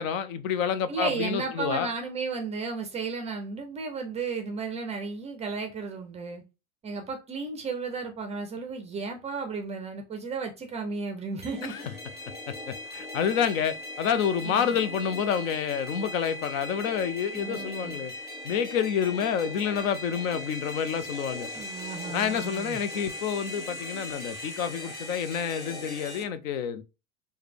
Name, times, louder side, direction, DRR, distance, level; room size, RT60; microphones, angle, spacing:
voice 1, 0.0-1.9 11.7-11.8 12.5-18.1 18.4-21.5 22.1-26.8, left 8 dB, 70° left, 0.6 m, -28 dB
voice 2, 0.9-6.4 6.8-11.9 14.4-14.8 17.3-18.0 21.5-22.8, right 4 dB, 15° right, 0.4 m, -34 dB
sound 1, 11.4-26.2, left 1 dB, 25° left, 1.7 m, -39 dB
4.7 x 2.2 x 3.3 m
hypercardioid pair, 115°, 42 cm